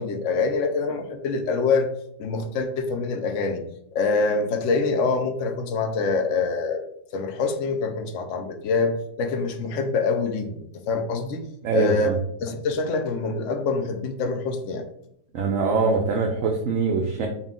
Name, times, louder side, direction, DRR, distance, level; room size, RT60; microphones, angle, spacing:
voice 1, 0.0-1.9 2.2-3.6 3.9-6.8 7.1-11.4 11.7-12.1 12.4-14.9, left 4 dB, 65° left, 6 dB, 0.7 m, -25 dB
voice 2, 11.6-12.2 15.3-17.3, right 4 dB, 70° right, 1 dB, 0.8 m, -23 dB
4.1 x 2.4 x 3.6 m, 0.74 s
omnidirectional pair, 1.8 m